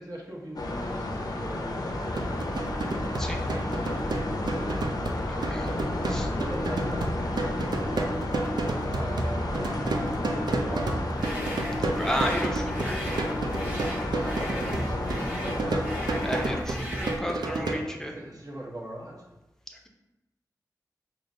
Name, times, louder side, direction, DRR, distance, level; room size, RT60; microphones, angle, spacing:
voice 1, 0.0-2.6 6.3-11.2 14.1-15.6 17.4-19.3, right 1 dB, 55° right, -3 dB, 0.9 m, -41 dB
sound 1, 0.6-16.6, left 1 dB, 60° left, 0.5 m, -32 dB
sound 2, 2.0-17.8, right 2 dB, 75° right, 0.4 m, -31 dB
voice 2, 5.3-5.8 6.1-6.3 11.9-13.3 16.2-18.1 19.7-19.9, equal, 5° left, 2 dB, 0.6 m, -33 dB
sound 3, 11.1-17.3, equal, 25° right, 1.1 m, -38 dB
4.7 x 2.0 x 2.6 m, 0.99 s
cardioid pair, 45°, 7 cm